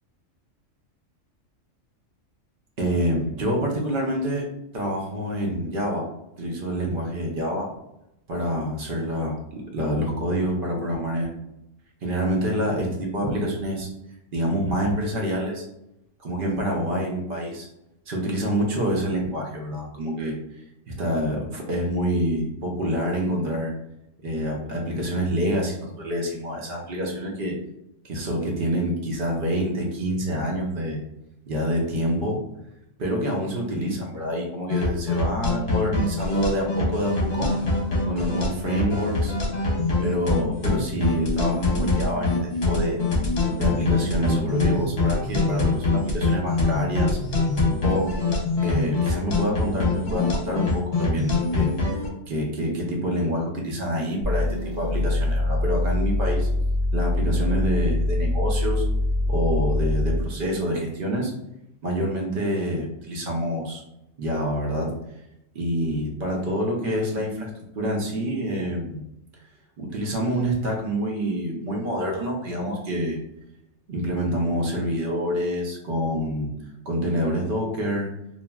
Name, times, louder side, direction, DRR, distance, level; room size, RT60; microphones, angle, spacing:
voice 1, 2.8-4.4 4.7-6.1 6.4-7.7 8.3-11.5 12.0-13.9 14.3-15.6 16.2-17.7 18.1-23.7 24.2-27.5 28.1-31.1 31.5-32.4 33.0-37.5 38.1-39.3 40.0-43.0 43.6-47.2 47.8-48.1 48.6-52.0 52.3-56.5 56.9-58.8 59.3-61.3 61.8-63.8 64.2-64.9 65.5-67.5 67.8-69.1 69.8-73.2 73.9-76.5 76.9-78.1, equal, 55° right, 0 dB, 0.6 m, -27 dB
sound 1, 34.7-52.1, left 3 dB, 55° left, 0.9 m, -24 dB
sound 2, 54.2-60.4, left 1 dB, 85° right, 1.0 m, -24 dB
3.0 x 2.5 x 2.2 m, 0.85 s
omnidirectional pair, 1.4 m